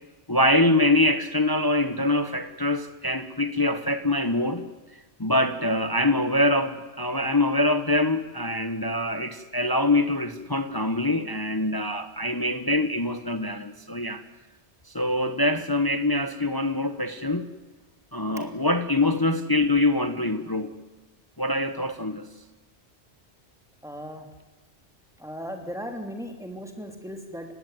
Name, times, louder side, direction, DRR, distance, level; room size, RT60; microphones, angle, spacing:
voice 1, 0.3-4.6 5.2-14.2 14.9-17.5 18.1-20.8 21.4-22.3, left 1 dB, 20° left, 9 dB, 1.1 m, -24 dB
voice 2, 23.8-24.2 25.2-27.6, equal, 5° right, 4 dB, 3.3 m, -37 dB
30.0 x 16.0 x 9.4 m, 1.2 s
omnidirectional pair, 1.2 m